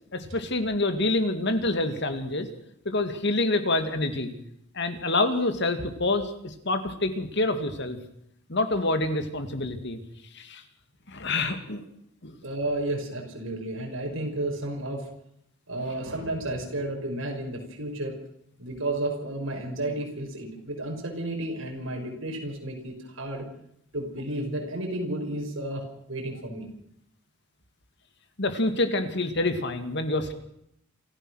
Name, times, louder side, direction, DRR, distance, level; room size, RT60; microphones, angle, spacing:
voice 1, 0.1-2.5 2.8-4.3 4.7-8.0 8.5-10.0 10.3-10.6 11.1-11.8 12.2-12.3 28.4-30.3, left 2 dB, 55° left, 8 dB, 2.5 m, -27 dB
voice 2, 12.4-15.0 15.7-18.2 18.6-23.4 23.9-26.7, right 1 dB, 70° right, 2 dB, 6.0 m, -32 dB
27.5 x 14.5 x 6.5 m, 0.74 s
head